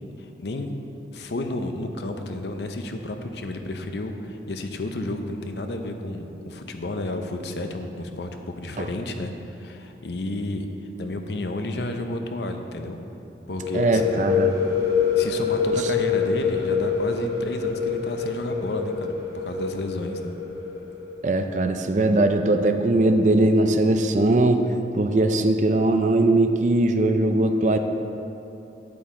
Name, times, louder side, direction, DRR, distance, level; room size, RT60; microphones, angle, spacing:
voice 1, 0.2-0.7 1.1-10.7 11.0-13.0 13.5-14.0 15.2-20.3, left 2 dB, 75° left, 5 dB, 0.7 m, -31 dB
sound 1, 13.6-21.2, left 6 dB, 20° right, 2.0 m, -26 dB
voice 2, 13.7-14.5 21.2-24.7 24.9-27.8, right 2 dB, 45° right, 7 dB, 0.4 m, -20 dB
9.1 x 8.5 x 3.7 m, 2.9 s
head